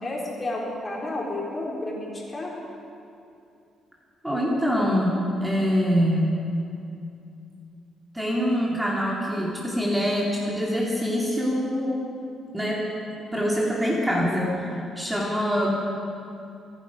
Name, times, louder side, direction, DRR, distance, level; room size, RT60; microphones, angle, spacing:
voice 1, 0.0-2.5, left 2 dB, 25° left, -3 dB, 4.1 m, -31 dB
voice 2, 4.2-6.4 8.1-12.1 12.5-12.9 13.3-15.7, equal, 10° right, -4 dB, 2.4 m, -24 dB
26.0 x 9.9 x 5.1 m, 2.7 s
cardioid pair, 90°, 0 cm